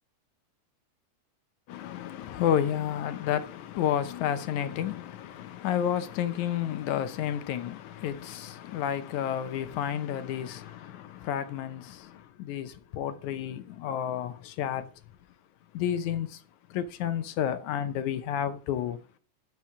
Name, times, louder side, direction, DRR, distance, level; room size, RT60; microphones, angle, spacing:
voice 1, 1.7-14.9 15.7-16.4 16.7-19.0, left 10 dB, 75° left, 2.1 m, -31 dB
12.5 x 5.9 x 4.8 m
omnidirectional pair, 3.7 m